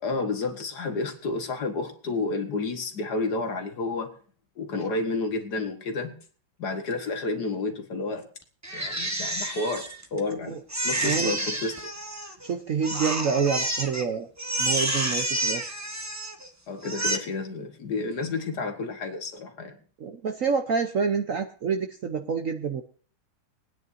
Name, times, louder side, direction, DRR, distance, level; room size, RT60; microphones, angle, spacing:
voice 1, 0.0-4.2 4.6-6.2 6.6-8.3 8.7-11.9 12.2-12.3 16.7-19.8, left 3 dB, 55° left, 6 dB, 1.9 m, -31 dB
Crying sobbing, 8.6-10.3 10.7-12.5 12.8-14.1 14.4-16.5 16.8-17.2, right 1 dB, 10° right, 0.9 m, -29 dB
voice 2, 11.0-11.4 12.4-14.3 14.6-15.7 20.0-22.8, right 6 dB, 55° right, 5 dB, 1.0 m, -27 dB
22.0 x 9.6 x 2.7 m, 0.43 s
omnidirectional pair, 2.2 m